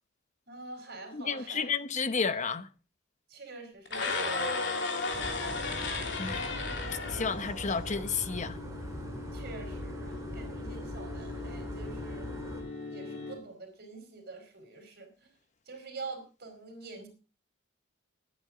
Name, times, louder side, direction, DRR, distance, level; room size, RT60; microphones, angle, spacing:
voice 1, 0.5-1.7 3.3-5.4 9.3-12.3 12.9-15.3 15.7-17.1, right 3 dB, 50° right, 4.7 m, -46 dB
voice 2, 1.1-2.7 6.2-6.5 6.9-8.6, left 5 dB, 35° left, 0.9 m, -32 dB
sound 1, 3.8-8.0, left 3 dB, 60° left, 3.0 m, -33 dB
sound 2, 5.1-12.6, equal, 15° right, 4.1 m, -41 dB
sound 3, 6.0-13.4, left 3 dB, 80° left, 4.4 m, -44 dB
21.0 x 9.8 x 3.8 m
head